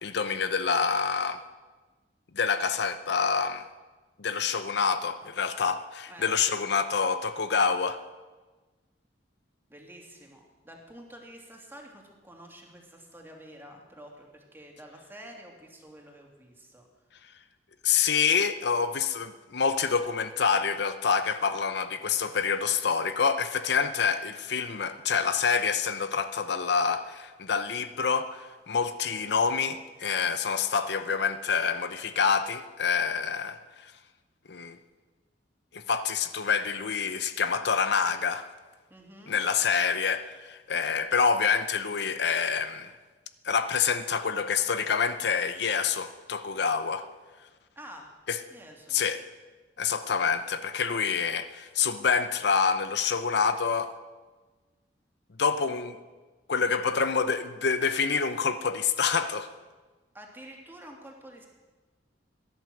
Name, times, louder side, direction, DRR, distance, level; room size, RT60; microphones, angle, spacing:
voice 1, 0.0-1.4 2.3-3.7 4.2-8.0 17.8-33.6 34.5-34.8 35.7-38.5 39.3-42.9 43.4-47.0 48.3-48.4 48.9-49.2 49.8-53.9 55.4-56.0 56.5-59.5, left 6 dB, 65° left, 11 dB, 0.7 m, -27 dB
voice 2, 9.7-16.8 38.9-39.4 47.8-48.1 48.5-49.0 60.1-61.5, equal, 15° right, 0 dB, 2.8 m, -48 dB
16.5 x 11.0 x 7.8 m, 1.3 s
head